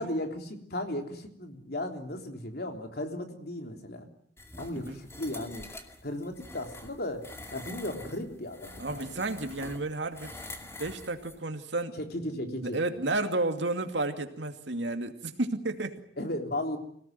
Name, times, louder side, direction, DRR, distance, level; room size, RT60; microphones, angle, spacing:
voice 1, 0.0-4.1 4.6-5.7 6.0-9.1 12.0-12.8 16.2-16.8, left 1 dB, 60° left, 4 dB, 3.5 m, -35 dB
sound 1, 4.4-11.4, left 2 dB, 15° left, 2.4 m, -46 dB
voice 2, 8.8-10.3 10.6-12.0 12.5-16.0, right 2 dB, 85° right, 6 dB, 2.5 m, -32 dB
26.0 x 17.5 x 9.2 m, 0.67 s
head